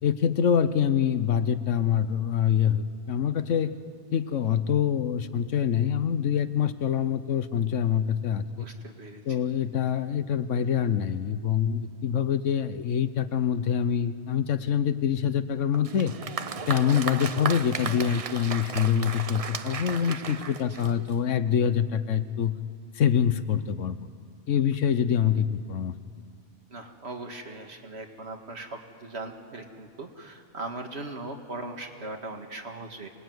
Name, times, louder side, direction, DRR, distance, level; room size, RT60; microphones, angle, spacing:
voice 1, 0.0-3.7 4.1-8.7 9.2-16.1 16.7-22.6 22.9-24.1 24.5-25.9, left 8 dB, 80° left, 13 dB, 1.2 m, -25 dB
voice 2, 8.6-9.2 20.1-20.6 26.7-33.1, right 2 dB, 60° right, 4 dB, 2.2 m, -39 dB
Applause, 15.7-21.3, right 5 dB, 40° right, 0.6 m, -35 dB
27.0 x 19.5 x 9.4 m, 2.3 s
omnidirectional pair, 1.3 m